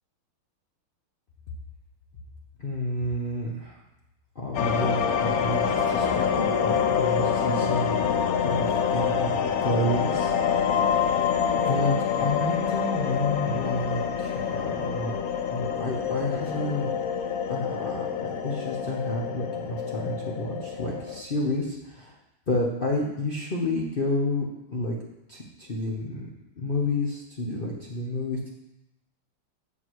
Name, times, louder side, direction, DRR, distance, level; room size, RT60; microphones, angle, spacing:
voice 1, 2.6-3.8 4.3-8.0 8.4-11.4 11.6-11.9 12.2-15.2 15.5-17.0 17.5-22.1 22.5-25.0 25.3-26.3 26.6-28.5, left 1 dB, 45° left, -3 dB, 0.7 m, -30 dB
sound 1, 4.5-21.2, left 7 dB, 80° left, 0.8 m, -26 dB
7.7 x 6.1 x 4.7 m, 0.90 s
omnidirectional pair, 2.2 m